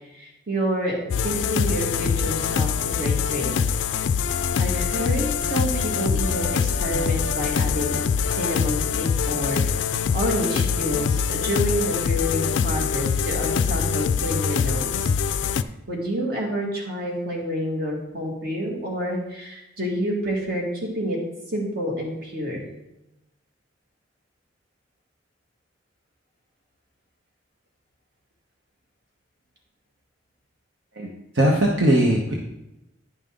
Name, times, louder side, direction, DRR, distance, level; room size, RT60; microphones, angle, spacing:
voice 1, 0.1-3.5 4.6-8.0 8.3-9.8 10.1-15.1 15.9-21.2 21.5-22.7, equal, 50° right, -1 dB, 1.9 m, -28 dB
sound 1, 1.1-15.6, left 6 dB, 65° left, 0.3 m, -24 dB
voice 2, 31.3-32.3, right 1 dB, 70° right, -2 dB, 1.0 m, -19 dB
10.0 x 5.5 x 3.7 m, 0.89 s
head